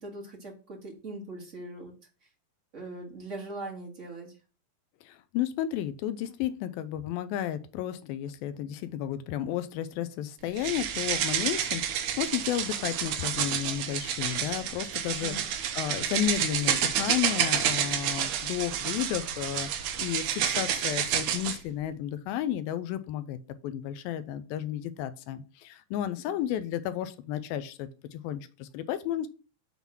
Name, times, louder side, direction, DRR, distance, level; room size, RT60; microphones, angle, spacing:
voice 1, 0.0-1.9 2.7-4.3 15.2-15.5 26.2-26.3, right 2 dB, 40° right, -1 dB, 1.0 m, -41 dB
voice 2, 5.0-15.3 15.7-23.4 23.6-29.3, left 11 dB, 85° left, 11 dB, 2.4 m, -32 dB
sound 1, 10.6-21.6, right 9 dB, 75° right, 1.9 m, -29 dB
7.1 x 4.0 x 5.9 m, 0.36 s
omnidirectional pair, 4.3 m